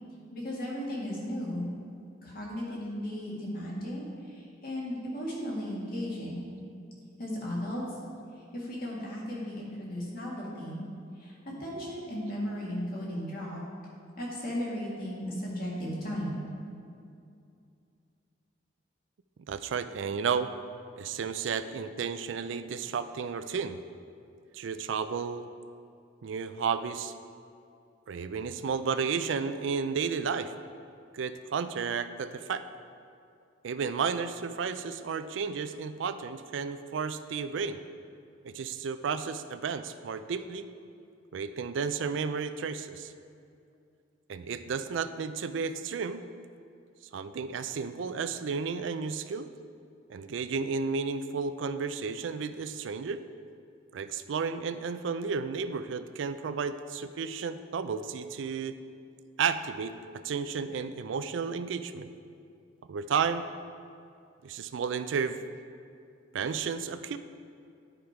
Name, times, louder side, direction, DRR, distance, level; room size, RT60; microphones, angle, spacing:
voice 1, 0.3-1.7 2.2-4.1 4.6-6.5 7.2-7.8 8.5-10.8 11.2-13.6 14.2-16.4, equal, 50° left, -5 dB, 2.0 m, -35 dB
voice 2, 19.5-20.5 21.0-23.8 24.5-25.5 26.2-27.1 28.1-30.5 31.1-32.6 33.6-37.8 38.4-40.7 41.3-43.1 44.3-46.2 47.1-49.5 50.1-53.2 53.9-58.8 59.4-62.1 62.9-63.4 64.4-65.4 66.3-67.2, right 5 dB, 75° right, 11 dB, 0.4 m, -32 dB
10.5 x 5.0 x 4.5 m, 2.5 s
head